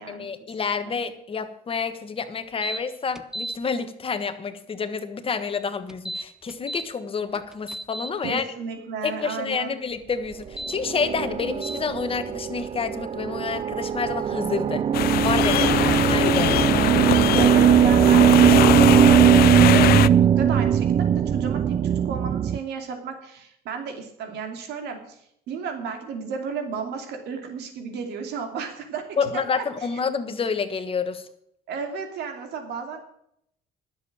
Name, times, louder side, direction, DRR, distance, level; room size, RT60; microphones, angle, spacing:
voice 1, 0.0-8.4 9.0-14.8 15.2-15.7 16.1-16.5 29.2-31.2, left 5 dB, 35° left, 9 dB, 1.4 m, -29 dB
sound 1, 2.6-2.8 3.2-3.6 5.9-6.9 7.3-8.1 10.4-10.8 11.6-11.8, right 1 dB, 5° right, 0.7 m, -33 dB
voice 2, 8.2-9.8 15.5-16.1 17.3-29.9 31.7-33.0, right 6 dB, 80° right, 5 dB, 2.8 m, -33 dB
sound 2, 10.7-22.6, right 9 dB, 35° right, 0.4 m, -19 dB
sound 3, 14.9-20.1, left 14 dB, 65° left, 0.5 m, -22 dB
11.0 x 7.5 x 8.7 m, 0.72 s
cardioid pair, 110°, 17 cm